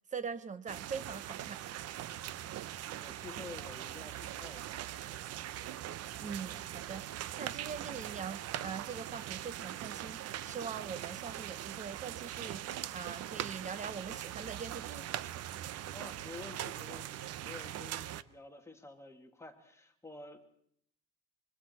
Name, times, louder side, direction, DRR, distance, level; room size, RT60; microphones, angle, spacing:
voice 1, 0.1-1.6 6.2-7.1 7.4-15.1, right 6 dB, 25° right, 1.2 m, -42 dB
sound 1, 0.7-18.2, right 12 dB, 50° right, 0.8 m, -41 dB
voice 2, 2.7-4.9 15.9-20.4, left 3 dB, 10° left, 2.2 m, -50 dB
25.5 x 24.0 x 4.4 m
cardioid pair, 165°, 32 cm